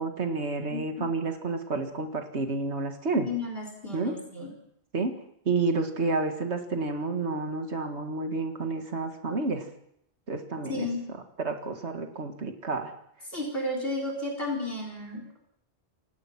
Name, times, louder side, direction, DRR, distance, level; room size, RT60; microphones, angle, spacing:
voice 1, 0.0-3.3 3.9-4.1 4.9-5.2 5.5-9.7 10.3-10.9 11.4-12.9, right 3 dB, 80° right, 5 dB, 2.2 m, -30 dB
voice 2, 3.2-4.5 10.7-11.0 13.3-15.4, left 2 dB, 60° left, 1 dB, 4.6 m, -33 dB
28.0 x 17.0 x 6.0 m, 0.74 s
omnidirectional pair, 1.1 m